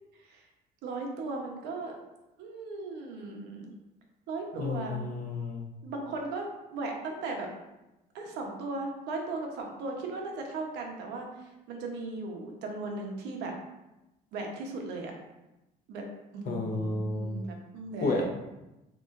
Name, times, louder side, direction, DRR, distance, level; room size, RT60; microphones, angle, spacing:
voice 1, 0.8-2.0 2.4-3.7 4.3-5.0 5.8-7.5 8.1-13.5 14.3-15.1 15.9-16.0 16.3-18.2, right 3 dB, 85° right, 1 dB, 1.0 m, -37 dB
voice 2, 4.5-5.7 16.5-17.4 18.0-18.2, left 3 dB, 55° left, 1 dB, 0.9 m, -31 dB
6.7 x 3.1 x 2.5 m, 0.97 s
cardioid pair, 110°, 17 cm